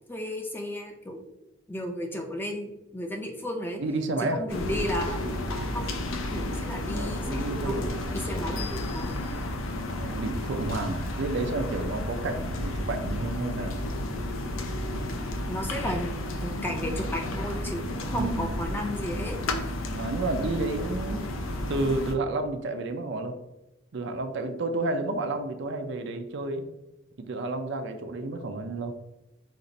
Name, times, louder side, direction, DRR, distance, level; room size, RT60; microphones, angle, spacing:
voice 1, 0.1-1.2 1.7-3.8 4.2-5.3 5.7-5.9 6.3-9.2 15.5-16.2 16.4-19.4, equal, 10° left, 2 dB, 0.5 m, -34 dB
voice 2, 3.8-4.4 6.9-7.9 8.2-8.5 9.9-13.8 18.1-18.5 19.9-21.2 21.7-23.4 23.9-26.7 27.2-28.9, right 2 dB, 60° right, 7 dB, 0.5 m, -31 dB
sound 1, 4.5-22.2, left 1 dB, 85° left, 0.6 m, -32 dB
5.3 x 2.5 x 3.9 m, 0.94 s
head